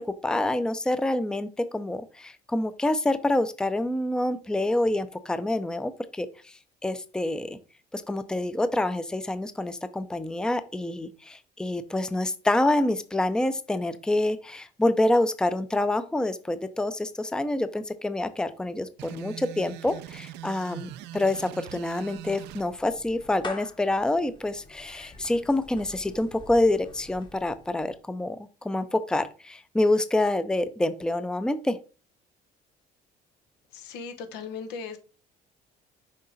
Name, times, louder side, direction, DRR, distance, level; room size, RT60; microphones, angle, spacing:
voice 1, 0.0-6.3 6.8-7.6 7.9-31.8, left 1 dB, 5° left, 12 dB, 0.5 m, -27 dB
sound 1, 19.0-22.7, right 13 dB, 90° right, 0.5 m, -42 dB
Clapping / Meow, 21.8-28.0, left 3 dB, 30° left, 1.1 m, -46 dB
voice 2, 33.7-35.0, left 5 dB, 90° left, 7 dB, 1.3 m, -37 dB
6.5 x 4.7 x 4.1 m, 0.35 s
cardioid pair, 110°, 17 cm